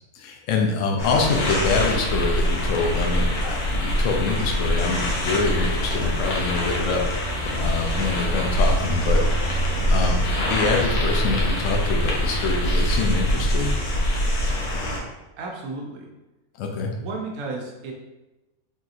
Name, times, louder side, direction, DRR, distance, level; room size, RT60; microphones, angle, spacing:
voice 1, 0.1-7.0 7.6-9.2 9.9-10.2 10.5-13.7 16.6-16.9, left 4 dB, 70° left, 2 dB, 0.9 m, -25 dB
sound 1, 1.0-15.0, equal, 85° left, 1.2 m, -23 dB
sound 2, 3.7-13.8, left 2 dB, 45° left, 1.1 m, -46 dB
voice 2, 15.4-16.1 17.0-17.9, right 3 dB, 80° right, 0 dB, 1.1 m, -33 dB
3.8 x 2.8 x 2.4 m, 1.1 s
omnidirectional pair, 1.5 m